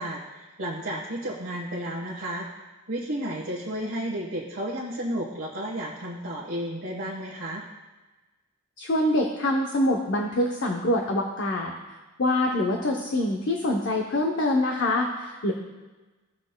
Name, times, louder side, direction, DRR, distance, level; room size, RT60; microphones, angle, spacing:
voice 1, 0.0-2.5 2.9-7.7, right 1 dB, 65° right, -6 dB, 1.2 m, -32 dB
voice 2, 8.8-11.7 12.2-15.5, left 1 dB, 55° left, 1 dB, 0.7 m, -25 dB
16.0 x 6.2 x 2.2 m, 1.2 s
head